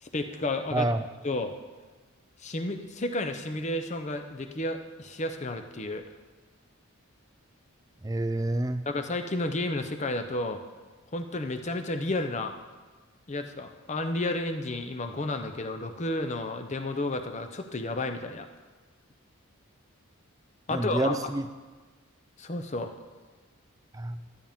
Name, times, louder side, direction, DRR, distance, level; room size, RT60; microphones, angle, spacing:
voice 1, 0.0-0.9 1.2-1.5 2.4-6.0 8.9-10.6 11.1-12.5 13.3-18.5 20.7-21.2 22.4-22.9, left 2 dB, 30° left, 7 dB, 0.6 m, -31 dB
voice 2, 0.7-1.0 8.0-8.9 20.7-21.5 23.9-24.2, right 1 dB, 15° right, 10 dB, 0.4 m, -28 dB
12.5 x 8.8 x 3.6 m, 1.3 s
head